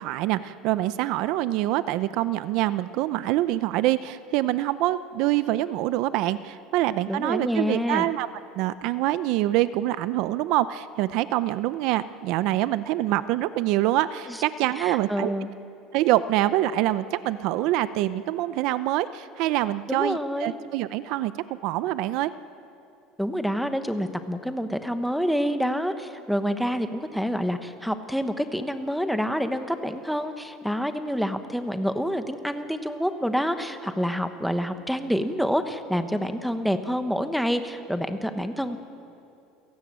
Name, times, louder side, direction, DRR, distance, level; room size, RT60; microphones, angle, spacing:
voice 1, 0.0-8.3 8.6-15.3 15.9-22.3, right 15 dB, 60° right, 14 dB, 0.6 m, -25 dB
voice 2, 7.1-8.1 14.3-14.4 14.8-15.5 19.9-20.5 23.2-38.8, equal, ahead, 8 dB, 1.1 m, -27 dB
29.5 x 18.0 x 7.5 m, 2.6 s
cardioid pair, 160°, 0 cm